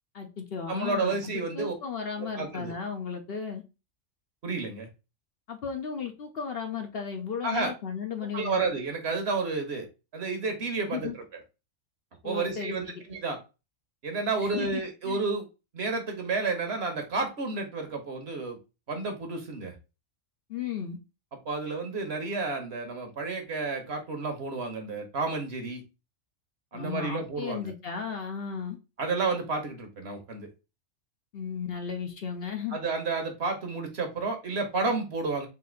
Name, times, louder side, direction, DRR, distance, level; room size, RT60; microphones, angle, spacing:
voice 1, 0.1-3.6 5.5-8.6 10.8-11.2 12.2-13.0 14.4-15.2 20.5-21.0 26.7-28.8 31.3-32.8, left 6 dB, 55° left, 5 dB, 0.8 m, -35 dB
voice 2, 0.7-1.7 2.2-2.7 4.4-4.9 7.4-7.7 8.3-11.1 12.2-13.4 14.0-15.4 15.7-18.6 18.9-19.7 21.4-25.8 26.7-27.7 29.0-30.5 32.7-35.5, right 3 dB, 55° right, 5 dB, 1.2 m, -31 dB
4.1 x 2.7 x 3.8 m, 0.28 s
omnidirectional pair, 1.3 m